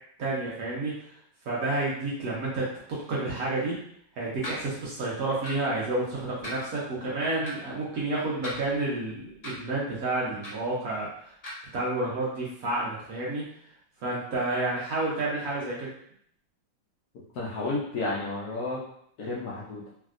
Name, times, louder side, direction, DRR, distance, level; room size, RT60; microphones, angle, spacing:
voice 1, 0.2-0.9 1.4-3.7 4.2-11.3 11.7-13.4 14.0-15.9, right 2 dB, 60° right, -5 dB, 1.0 m, -30 dB
sound 1, 4.4-4.6 5.4-5.7 6.4-6.6 7.4-7.5 8.4-8.9 9.4-9.6 10.4-10.7 11.4-11.5, equal, 45° left, 0.5 m, -38 dB
voice 2, 17.1-18.8 19.2-19.9, left 2 dB, 70° left, -5 dB, 1.0 m, -32 dB
3.3 x 2.7 x 2.4 m, 0.67 s
omnidirectional pair, 2.1 m